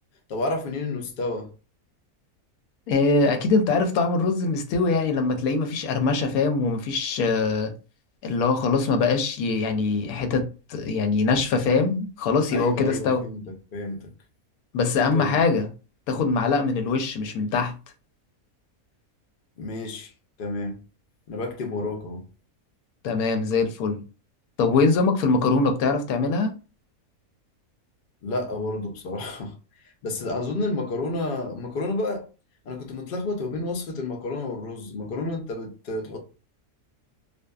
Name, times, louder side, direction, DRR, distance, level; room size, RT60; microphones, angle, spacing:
voice 1, 0.3-1.5 12.5-13.4 13.7-14.1 15.1-15.4 16.8-16.9 19.6-20.1 20.4-20.8 21.3-22.2 28.2-29.6 29.8-32.3 32.6-36.2, left 2 dB, 55° left, 0.6 m, -30 dB
voice 2, 2.9-7.7 8.2-10.4 10.7-13.2 14.7-15.7 16.1-17.7 23.0-24.0 24.6-26.5, left 4 dB, 85° left, 1.1 m, -23 dB
2.6 x 2.3 x 2.2 m
omnidirectional pair, 1.5 m